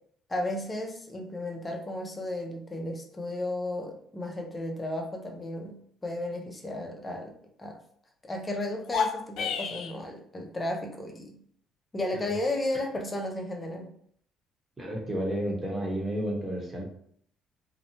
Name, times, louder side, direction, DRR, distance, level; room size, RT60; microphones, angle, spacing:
voice 1, 0.3-7.8 8.2-11.4 11.9-13.9, left 1 dB, 20° left, 2 dB, 0.5 m, -34 dB
sound 1, 8.8-10.0, left 6 dB, 70° left, 0.3 m, -30 dB
voice 2, 14.8-16.9, right 1 dB, 20° right, -2 dB, 0.9 m, -31 dB
2.8 x 2.0 x 2.7 m, 0.65 s
cardioid pair, 90°, 0 cm